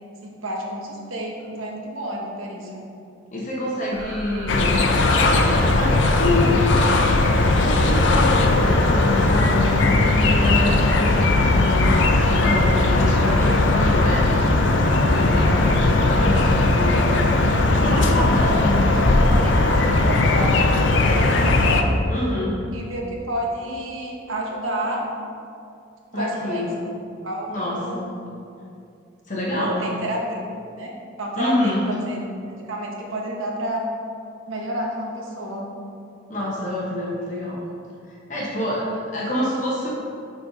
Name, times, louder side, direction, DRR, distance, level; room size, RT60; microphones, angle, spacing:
voice 1, 0.2-2.9 17.7-21.8 22.7-25.0 26.1-26.9 27.2-28.0 29.5-30.4 30.8-30.9 31.2-33.8 34.5-35.7, right 1 dB, 90° right, -1 dB, 1.1 m, -30 dB
voice 2, 3.3-6.7 7.5-14.3 14.6-17.2 17.8-18.9 22.1-22.6 26.1-26.8 27.5-28.1 29.3-29.9 31.4-31.8 36.3-37.6 38.1-39.9, left 1 dB, 40° left, -5 dB, 0.9 m, -27 dB
sound 1, 3.9-18.6, equal, 60° right, 1.3 m, -32 dB
sound 2, 4.5-21.8, left 2 dB, 70° left, 0.5 m, -18 dB
6.6 x 3.9 x 5.0 m, 2.5 s
head